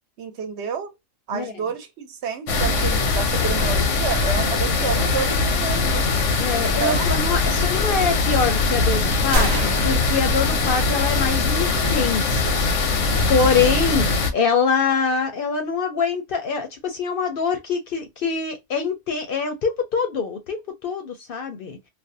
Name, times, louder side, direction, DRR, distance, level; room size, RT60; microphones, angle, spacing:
voice 1, 0.2-0.9 1.3-6.1 6.6-7.5, right 6 dB, 70° right, 0.9 m, -30 dB
sound 1, 2.5-14.3, left 3 dB, 90° left, 1.0 m, -21 dB
voice 2, 6.4-12.6 13.3-14.1 14.3-21.8, left 5 dB, 60° left, 0.6 m, -24 dB
sound 2, 9.3-11.2, right 2 dB, 55° right, 0.5 m, -29 dB
2.5 x 2.1 x 2.5 m
omnidirectional pair, 1.2 m